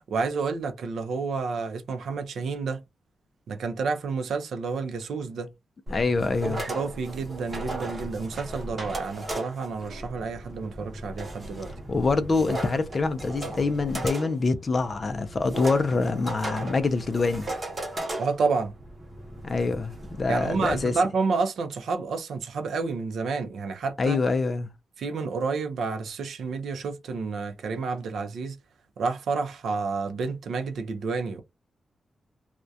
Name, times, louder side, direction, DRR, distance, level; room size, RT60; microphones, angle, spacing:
voice 1, 0.1-2.8 3.5-5.5 6.4-11.7 18.2-18.7 20.3-24.2 25.0-28.6 29.0-31.4, right 4 dB, 75° right, 0.5 m, -29 dB
voice 2, 5.9-6.6 11.9-17.5 19.4-20.9 24.0-24.7, left 3 dB, 30° left, 0.3 m, -25 dB
sound 1, 5.9-20.8, right 1 dB, 25° right, 0.8 m, -36 dB
2.3 x 2.1 x 2.6 m
wide cardioid pair, 165°, 0 cm